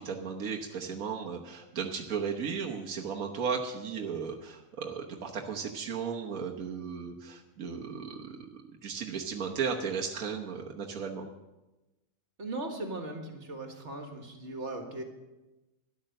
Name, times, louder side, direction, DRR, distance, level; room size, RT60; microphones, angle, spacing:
voice 1, 0.0-11.3, right 6 dB, 85° right, 0 dB, 1.5 m, -35 dB
voice 2, 12.4-15.0, right 2 dB, 55° right, 4 dB, 2.0 m, -38 dB
13.0 x 11.0 x 6.5 m, 1.1 s
omnidirectional pair, 1.4 m